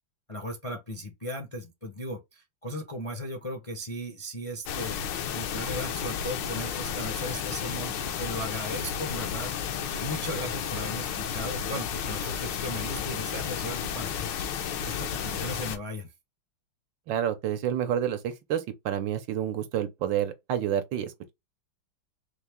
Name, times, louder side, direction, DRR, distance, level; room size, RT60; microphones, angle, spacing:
voice 1, 0.3-5.0 5.3-9.5 10.0-16.1, equal, 30° left, 0.6 m, -37 dB
sound 1, 4.7-15.8, left 8 dB, 70° left, 1.3 m, -32 dB
voice 2, 17.1-21.3, right 10 dB, 70° right, 1.4 m, -29 dB
4.2 x 2.8 x 3.4 m
omnidirectional pair, 2.2 m